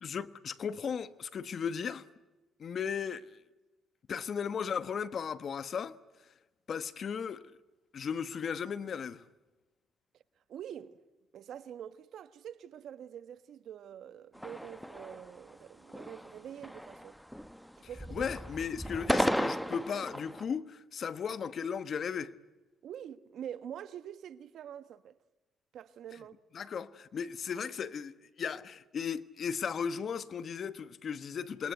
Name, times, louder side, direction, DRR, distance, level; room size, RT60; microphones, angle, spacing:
voice 1, 0.0-2.0 2.6-3.4 4.1-6.0 6.7-7.5 7.9-9.2 18.1-22.3 26.5-31.7, left 7 dB, 55° left, 1.2 m, -36 dB
voice 2, 10.5-11.0 11.3-17.2 17.8-18.3 22.8-25.2 25.7-26.4, right 9 dB, 70° right, 1.3 m, -45 dB
sound 1, 14.4-15.5 15.9-16.4 16.6-17.6 17.9-20.4, equal, ahead, 1.2 m, -34 dB
27.5 x 22.0 x 9.2 m
cardioid pair, 90°, 0 cm